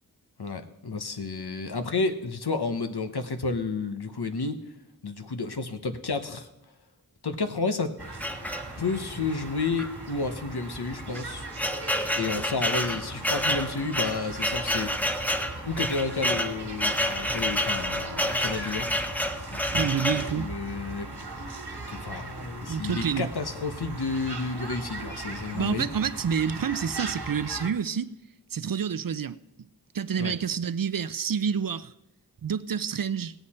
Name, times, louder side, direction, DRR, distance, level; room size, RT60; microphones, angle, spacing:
voice 1, 0.4-4.6 5.0-6.5 7.2-7.9 8.8-11.5 12.2-15.1 15.7-18.9 19.5-21.1 21.9-25.9 30.2-30.4, left 4 dB, 80° left, 1.0 m, -31 dB
sound 1, 8.0-27.7, right 2 dB, 90° right, 1.6 m, -39 dB
sound 2, 8.2-9.1 9.8-9.9 10.2-10.3 11.0-20.3, equal, 5° left, 0.8 m, -29 dB
voice 2, 19.7-20.5 22.7-23.3 25.5-28.1 28.5-29.4 29.9-31.9 32.4-33.3, right 7 dB, 60° right, 0.5 m, -28 dB
18.0 x 8.1 x 4.3 m
wide cardioid pair, 45°, 38 cm